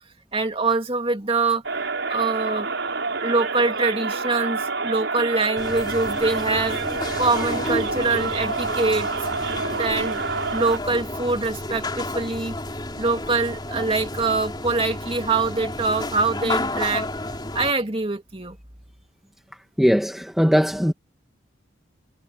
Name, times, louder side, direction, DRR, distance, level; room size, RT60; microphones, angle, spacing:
voice 1, 0.3-1.6 2.1-2.7 3.2-6.8 7.2-9.1 9.7-10.2 10.5-12.5 13.0-17.1 17.5-18.6, right 3 dB, 30° right, 2.5 m, -24 dB
sound 1, 1.6-10.8, right 4 dB, 70° right, 5.8 m, -28 dB
sound 2, 5.6-17.7, left 2 dB, 20° left, 4.4 m, -31 dB
voice 2, 19.8-20.9, equal, ahead, 1.4 m, -19 dB
head